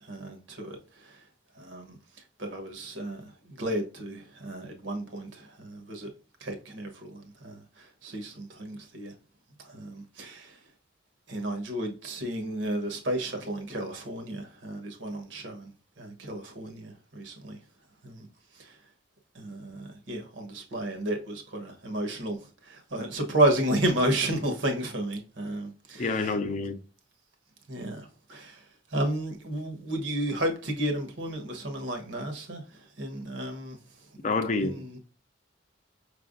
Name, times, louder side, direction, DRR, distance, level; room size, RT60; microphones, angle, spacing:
voice 1, 0.0-1.3 1.5-6.1 6.4-9.1 9.6-10.7 11.3-17.6 18.0-18.9 19.3-26.5 27.7-34.2 34.5-35.0, right 1 dB, 80° right, 1.2 m, -32 dB
voice 2, 26.0-26.8 34.2-34.8, left 3 dB, 40° left, 0.5 m, -28 dB
5.7 x 3.3 x 2.6 m
head